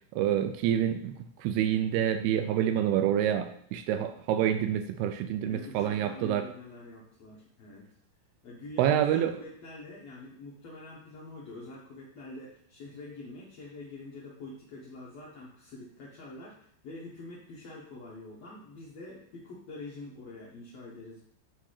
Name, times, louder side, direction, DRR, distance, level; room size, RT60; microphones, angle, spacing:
voice 1, 0.1-1.1 1.4-6.4 8.8-9.3, right 10 dB, 85° right, 9 dB, 2.3 m, -27 dB
voice 2, 5.5-7.8 8.4-21.2, left 2 dB, 80° left, -5 dB, 1.5 m, -45 dB
9.6 x 3.4 x 6.4 m, 0.64 s
omnidirectional pair, 5.0 m